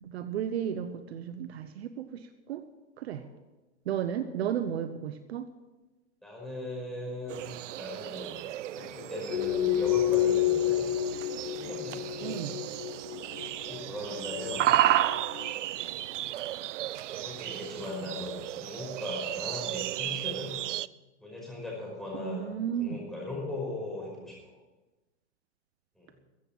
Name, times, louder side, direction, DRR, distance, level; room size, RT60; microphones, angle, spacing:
voice 1, 0.0-2.6 3.0-3.2 3.9-5.5 12.2-12.5 22.1-23.0, right 9 dB, 60° right, 9 dB, 1.1 m, -34 dB
voice 2, 4.0-4.5 6.2-7.4 7.8-8.4 8.7-10.9 11.5-12.3 13.4-15.2 17.1-20.6 21.2-22.5 22.7-24.5 26.0-26.1, left 2 dB, ahead, -4 dB, 5.4 m, -39 dB
sound 1, 7.3-20.9, right 13 dB, 80° right, 0.6 m, -33 dB
sound 2, 9.3-15.5, left 12 dB, 85° left, 2.4 m, -29 dB
14.5 x 8.4 x 7.4 m, 1.1 s
hypercardioid pair, 145°, 36 cm